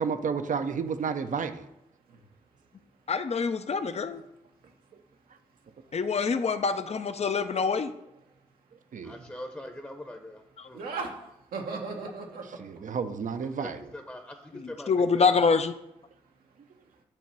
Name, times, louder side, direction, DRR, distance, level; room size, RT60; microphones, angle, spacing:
voice 1, 0.0-1.7 4.9-5.0 8.9-9.2 12.6-13.8, right 6 dB, 60° right, 9 dB, 0.7 m, -31 dB
voice 2, 3.1-4.2 5.9-7.9 10.6-10.7 14.9-15.7, left 5 dB, 45° left, 10 dB, 0.6 m, -25 dB
voice 3, 9.0-10.8 13.5-15.5, left 1 dB, 10° left, 4 dB, 0.9 m, -42 dB
voice 4, 10.7-11.2 11.5-12.6, right 4 dB, 80° right, 1 dB, 1.2 m, -37 dB
8.7 x 3.0 x 6.0 m, 0.85 s
supercardioid pair, 40°, 15 cm